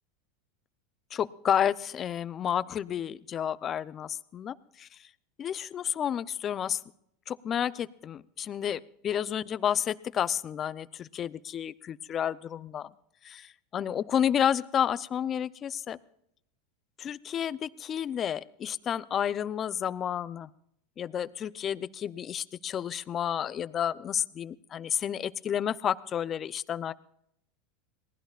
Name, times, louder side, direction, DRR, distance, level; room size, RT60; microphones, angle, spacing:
voice 1, 1.1-5.1 5.4-6.8 7.3-12.9 13.2-16.0 17.0-20.5 21.0-26.9, left 9 dB, 35° left, 16 dB, 0.6 m, -31 dB
27.0 x 19.0 x 2.5 m, 0.73 s
hypercardioid pair, 110°, 0 cm